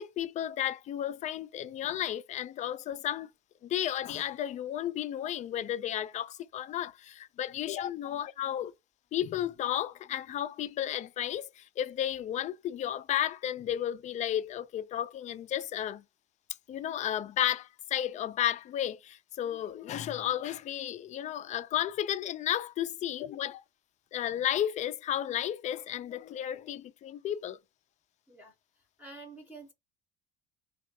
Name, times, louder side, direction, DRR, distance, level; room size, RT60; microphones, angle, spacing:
voice 1, 0.0-3.3 3.6-8.7 9.1-16.0 16.7-23.5 24.1-27.6, left 11 dB, 35° left, 0.4 m, -33 dB
voice 2, 28.3-29.7, right 3 dB, 5° right, 0.8 m, -49 dB
3.1 x 2.4 x 4.2 m
supercardioid pair, 120°, 20 cm